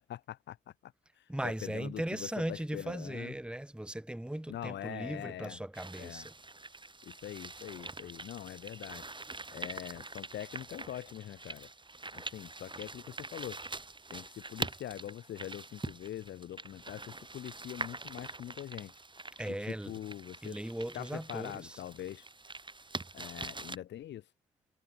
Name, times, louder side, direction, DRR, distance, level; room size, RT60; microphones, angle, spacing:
voice 1, 0.0-3.3 4.5-5.6 6.0-6.2 7.0-9.1 9.5-11.7 12.1-13.6 14.1-19.0 19.5-20.6 20.9-22.3 23.1-24.3, left 12 dB, 70° left, 1.4 m, -43 dB
voice 2, 1.3-6.3 19.4-20.0 20.4-21.8, right 1 dB, 5° right, 1.7 m, -38 dB
sound 1, 5.7-23.8, right 3 dB, 25° right, 3.9 m, -44 dB
hypercardioid pair, 45°, 19 cm